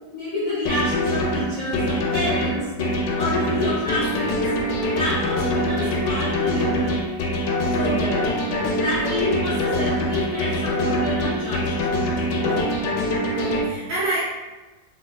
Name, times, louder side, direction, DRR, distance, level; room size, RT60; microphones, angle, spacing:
voice 1, 0.1-2.7 3.1-4.4 4.9-7.0 7.7-8.0 8.7-11.7, left 2 dB, 60° left, -9 dB, 0.8 m, -28 dB
sound 1, 0.7-13.6, left 1 dB, 75° left, 1.2 m, -24 dB
voice 2, 7.8-8.2 9.0-9.2 12.4-12.9 13.3-14.2, right 2 dB, 65° right, -8 dB, 1.1 m, -29 dB
3.8 x 2.4 x 2.3 m, 1.2 s
omnidirectional pair, 2.0 m